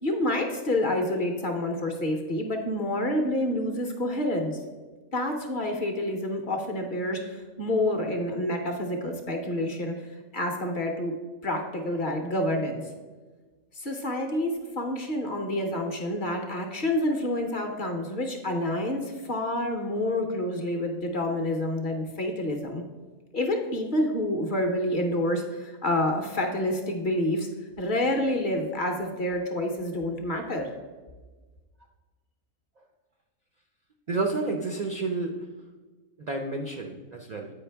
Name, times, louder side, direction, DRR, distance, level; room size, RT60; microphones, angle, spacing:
voice 1, 0.0-4.6 5.1-9.9 10.3-11.1 11.4-12.8 13.7-22.8 23.3-27.5 27.8-30.7, left 1 dB, 45° left, 3 dB, 0.8 m, -28 dB
voice 2, 34.1-35.4 36.3-37.5, right 3 dB, 80° right, 3 dB, 0.3 m, -30 dB
8.4 x 5.1 x 3.4 m, 1.3 s
omnidirectional pair, 1.4 m